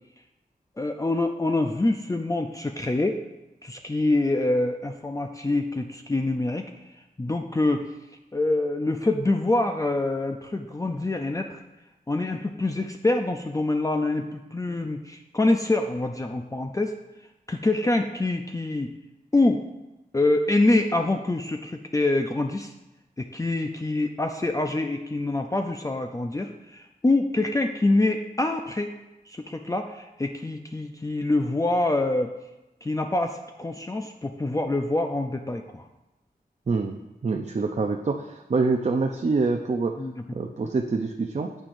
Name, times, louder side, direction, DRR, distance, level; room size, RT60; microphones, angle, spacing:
voice 1, 0.8-3.2 3.6-7.9 8.3-11.6 12.1-17.0 17.5-18.9 19.3-19.6 20.1-22.7 23.2-28.9 29.3-32.3 32.8-35.9 40.0-40.2, left 2 dB, 20° left, 4 dB, 0.5 m, -25 dB
voice 2, 36.7-40.0 40.3-41.6, right 4 dB, 45° right, 3 dB, 0.6 m, -26 dB
9.0 x 8.2 x 2.6 m, 1.0 s
cardioid pair, 45°, 17 cm